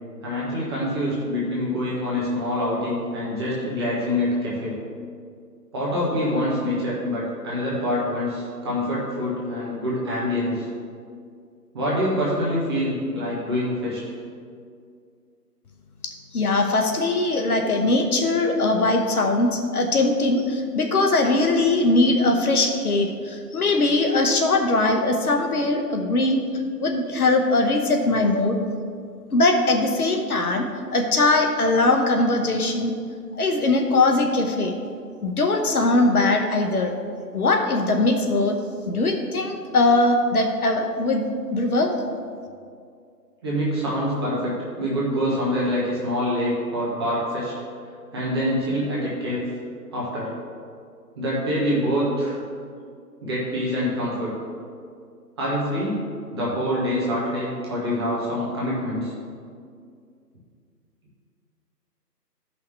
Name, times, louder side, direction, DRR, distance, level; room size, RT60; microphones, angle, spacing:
voice 1, 0.2-4.8 5.7-10.7 11.7-14.1 43.4-47.5 48.1-49.4 49.9-50.3 51.2-52.4 53.2-54.3 55.4-56.1 56.3-59.1, equal, 15° right, -7 dB, 1.1 m, -25 dB
voice 2, 16.0-26.5 26.8-28.6 29.3-30.7 30.9-32.9 33.3-34.7 35.2-36.9 37.3-38.6 38.9-41.2 41.5-41.9, left 2 dB, 60° left, 3 dB, 1.0 m, -21 dB
12.0 x 5.6 x 3.3 m, 2.2 s
figure-of-eight pair, 155°, 49 cm